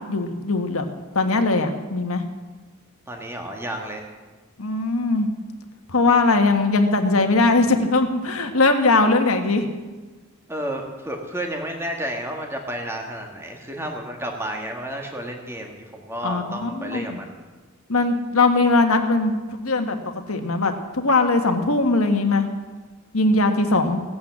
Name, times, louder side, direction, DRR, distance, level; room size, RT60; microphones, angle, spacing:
voice 1, 0.1-0.9 1.1-2.2 4.6-5.3 5.9-9.7 16.2-17.2 17.9-20.0 20.3-22.5 23.1-24.0, left 3 dB, 70° left, 5 dB, 1.5 m, -20 dB
voice 2, 3.1-4.1 10.5-17.4, right 1 dB, 10° right, 2 dB, 1.7 m, -31 dB
17.5 x 8.7 x 7.3 m, 1.3 s
head